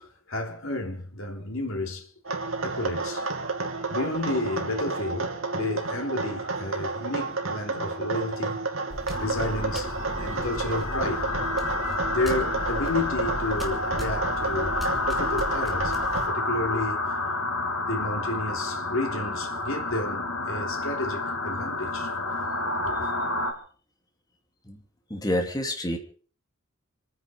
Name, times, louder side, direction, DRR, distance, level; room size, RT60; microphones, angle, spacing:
voice 1, 0.0-2.1 2.6-3.2 3.9-8.6 8.9-9.9 10.2-11.3 12.1-15.9 16.3-17.0 17.9-22.3 22.8-23.1, left 2 dB, 70° left, 3.3 m, -31 dB
sound 1, 2.2-16.3, right 3 dB, 70° right, 2.5 m, -31 dB
sound 2, 8.9-16.3, equal, ahead, 2.8 m, -38 dB
sound 3, 9.1-23.5, left 2 dB, 85° left, 3.7 m, -30 dB
voice 2, 25.1-26.0, left 1 dB, 20° left, 2.7 m, -28 dB
27.0 x 10.0 x 5.3 m
head